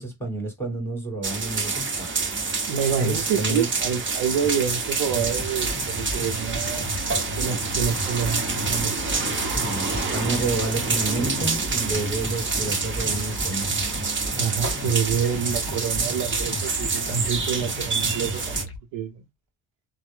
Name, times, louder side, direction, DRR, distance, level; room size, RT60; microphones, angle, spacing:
voice 1, 0.0-2.4 2.7-3.7 9.5-13.7, right 2 dB, 5° left, 2.1 m, -30 dB
sound 1, 1.2-18.6, right 4 dB, 25° right, 1.0 m, -27 dB
voice 2, 2.7-6.9 7.3-8.9 14.4-19.1, right 7 dB, 80° right, 0.7 m, -27 dB
sound 2, 5.0-18.8, left 1 dB, 30° left, 1.2 m, -35 dB
3.2 x 2.1 x 3.5 m
cardioid pair, 110°, 44 cm